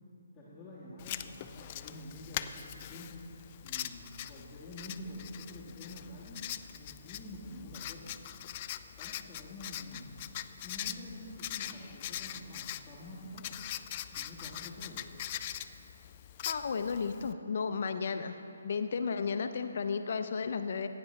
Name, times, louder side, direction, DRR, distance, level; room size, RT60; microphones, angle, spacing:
voice 1, 0.3-3.2 3.6-8.2 8.9-10.1 10.6-13.6 14.1-15.0, left 1 dB, 10° left, -11 dB, 1.7 m, -47 dB
Writing, 1.0-17.3, left 12 dB, 30° left, 0.3 m, -42 dB
voice 2, 16.4-18.3 18.6-20.9, left 5 dB, 55° left, 8 dB, 0.7 m, -33 dB
16.5 x 9.8 x 3.3 m, 2.9 s
hypercardioid pair, 155°, 0 cm